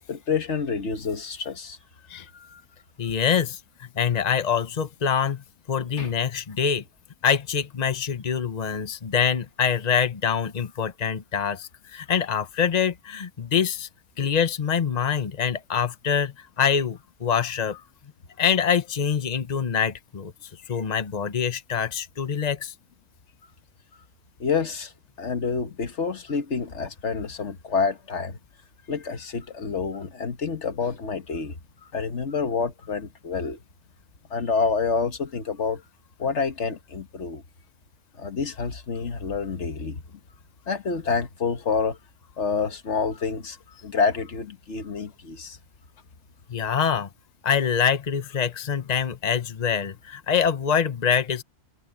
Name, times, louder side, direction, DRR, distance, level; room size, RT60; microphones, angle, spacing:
voice 1, 0.1-1.8 2.3-2.6 6.0-6.1 24.4-24.9 25.2-28.4 28.9-31.6 31.9-33.6 34.3-35.8 36.2-37.4 38.2-40.0 40.7-42.0 42.4-43.6 43.8-45.6, left 5 dB, 85° left, 1.7 m, -28 dB
voice 2, 3.0-6.8 7.2-13.9 14.2-17.8 18.4-20.3 20.7-22.7 46.5-47.1 47.4-51.4, left 7 dB, 40° left, 1.1 m, -25 dB
omnidirectional pair, 1.1 m